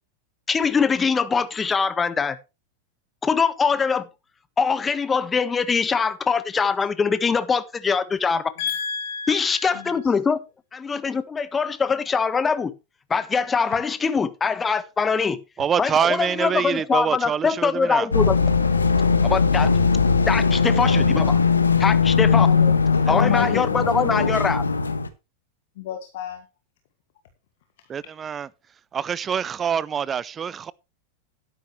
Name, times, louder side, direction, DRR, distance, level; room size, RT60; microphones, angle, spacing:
voice 1, 0.5-2.4 3.2-4.0 4.6-8.5 9.3-10.4 10.7-12.7 13.1-15.4 15.8-18.4 19.2-19.7 20.3-21.4 21.8-22.5 23.1-24.6, left 5 dB, 15° left, 1.3 m, -23 dB
voice 2, 8.6-10.0 22.3-24.4 25.8-26.4, left 9 dB, 55° left, 2.1 m, -30 dB
voice 3, 15.6-18.1 23.1-23.3 27.9-28.5 28.9-30.7, right 7 dB, 20° right, 0.6 m, -25 dB
sound 1, 18.1-25.1, left 5 dB, 75° left, 1.4 m, -19 dB
13.0 x 11.0 x 3.2 m
figure-of-eight pair, 90°, 0 cm